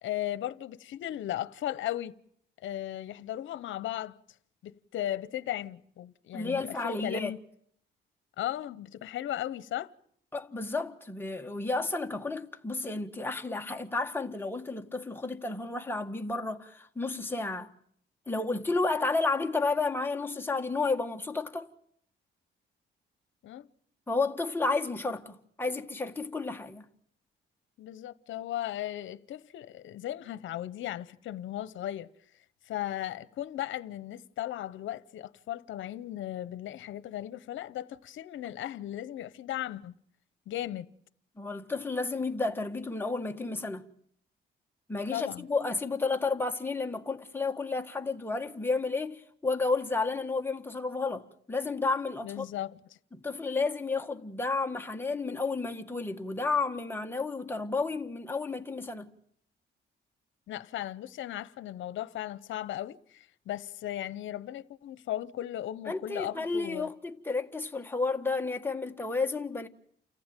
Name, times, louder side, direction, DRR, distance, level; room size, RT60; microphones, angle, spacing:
voice 1, 0.0-2.2 2.6-4.2 4.6-7.4 8.4-9.9 23.4-23.7 27.8-32.1 32.7-39.9 40.5-40.9 45.1-45.5 52.2-52.8 60.5-66.9, left 13 dB, 75° left, 1.0 m, -36 dB
voice 2, 6.3-7.3 10.3-17.7 18.3-21.7 24.1-26.9 41.4-43.8 44.9-52.5 53.1-59.1 65.9-69.7, left 3 dB, 10° left, 1.7 m, -31 dB
29.0 x 15.0 x 9.1 m
cardioid pair, 90°, 20 cm